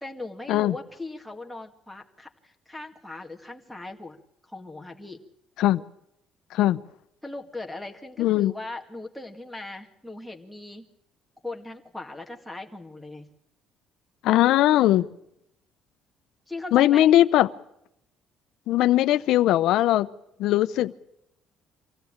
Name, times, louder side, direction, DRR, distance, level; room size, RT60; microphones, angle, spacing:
voice 1, 0.0-4.2 4.4-5.2 7.2-10.9 11.4-13.3 16.5-17.1, left 2 dB, 5° left, 2.1 m, -39 dB
voice 2, 8.2-8.5 14.2-15.1 16.7-17.5 18.7-20.1 20.4-20.9, left 14 dB, 80° left, 0.8 m, -20 dB
25.0 x 16.0 x 8.9 m
cardioid pair, 125°, 0 cm